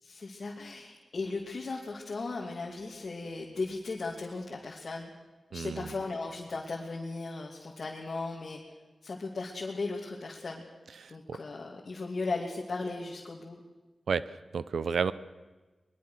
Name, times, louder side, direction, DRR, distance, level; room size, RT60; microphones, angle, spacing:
voice 1, 0.0-5.1 5.5-8.6 9.0-10.6 11.1-13.6, left 3 dB, 55° left, -1 dB, 2.7 m, -37 dB
voice 2, 5.5-5.9 11.0-11.4 14.1-14.3 14.5-15.1, right 6 dB, 90° right, 16 dB, 0.7 m, -31 dB
23.0 x 22.0 x 6.5 m, 1.2 s
wide cardioid pair, 85°, 0 cm